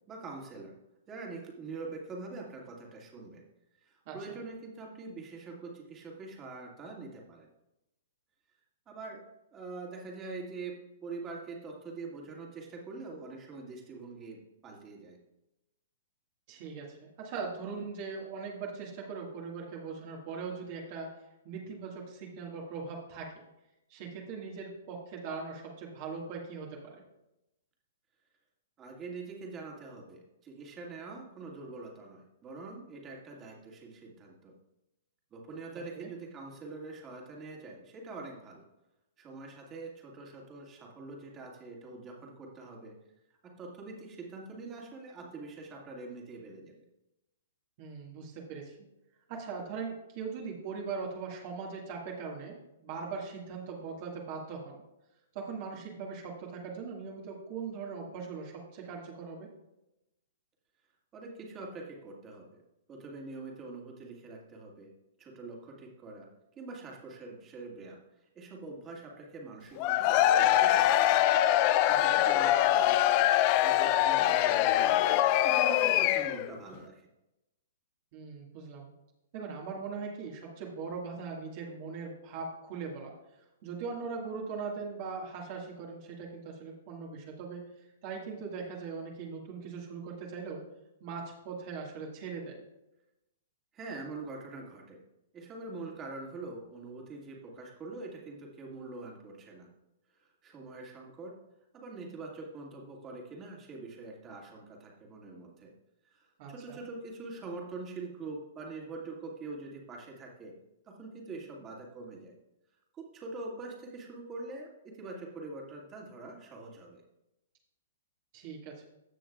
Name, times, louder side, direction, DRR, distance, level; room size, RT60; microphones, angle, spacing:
voice 1, 0.1-0.7 1.1-3.4 3.8-7.5 8.9-9.2 9.5-15.2 28.8-34.5 35.3-38.6 39.2-42.9 43.4-46.7 61.1-62.6 62.9-64.9 65.2-66.3 66.6-71.2 71.7-73.0 73.6-75.0 75.4-77.1 93.7-95.0 95.3-99.7 100.1-101.4 101.7-105.7 106.0-110.5 110.9-112.3 112.9-117.0, right 3 dB, 25° right, -1 dB, 2.2 m, -44 dB
voice 2, 16.5-21.1 21.4-23.3 23.9-27.0 35.9-36.1 47.8-48.8 49.3-54.8 55.3-59.5 71.9-72.2 78.1-78.9 79.3-83.1 83.6-87.6 88.0-90.6 91.0-92.6 106.4-106.8 118.3-118.9, right 5 dB, 45° right, -2 dB, 1.9 m, -40 dB
Cheering / Crowd, 69.8-76.5, left 13 dB, 40° left, 0.4 m, -24 dB
15.5 x 6.2 x 2.4 m, 0.91 s
hypercardioid pair, 125°, 0 cm